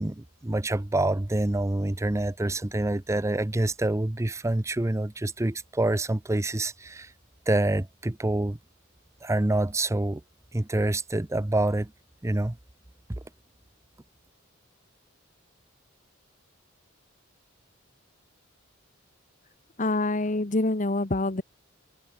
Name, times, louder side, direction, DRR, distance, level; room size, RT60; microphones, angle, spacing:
voice 1, 0.0-7.1 7.5-8.6 9.2-10.2 10.5-11.9 12.2-12.5, right 1 dB, 15° right, 0.6 m, -26 dB
voice 2, 19.8-21.4, left 2 dB, 40° left, 1.3 m, -26 dB
head